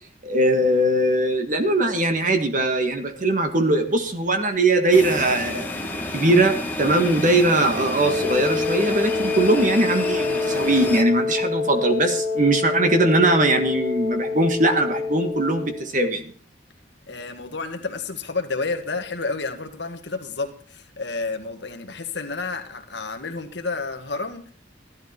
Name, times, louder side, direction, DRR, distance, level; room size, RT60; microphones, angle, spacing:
voice 1, 0.2-5.7 6.1-16.3, right 2 dB, 40° right, 1.6 m, -20 dB
sound 1, 4.9-11.0, left 1 dB, 10° left, 1.5 m, -30 dB
Wind instrument woodwind instrument, 8.0-15.9, left 4 dB, 70° right, 2.7 m, -26 dB
voice 2, 17.1-24.5, left 3 dB, 60° left, 1.7 m, -30 dB
14.0 x 12.0 x 4.4 m
head